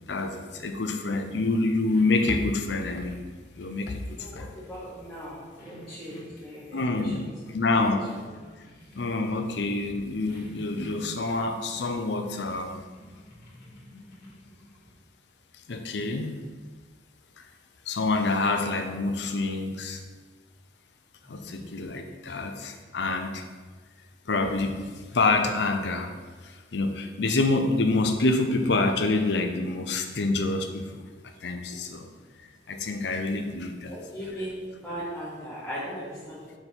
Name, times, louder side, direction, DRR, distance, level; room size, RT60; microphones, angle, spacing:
voice 1, 0.0-3.2 3.6-4.5 6.7-8.1 8.9-12.8 15.7-16.4 17.4-17.5 17.9-20.0 21.3-23.4 24.3-26.1 26.4-31.0 31.4-32.1 32.7-34.0, left 3 dB, 70° left, 6 dB, 0.6 m, -27 dB
sound 1, 1.9-14.9, left 1 dB, 55° left, 1.4 m, -51 dB
voice 2, 4.1-7.3 7.8-8.2 21.2-21.7 33.9-34.6 34.8-36.5, equal, 5° left, -11 dB, 1.2 m, -39 dB
5.1 x 4.4 x 4.4 m, 1.4 s
head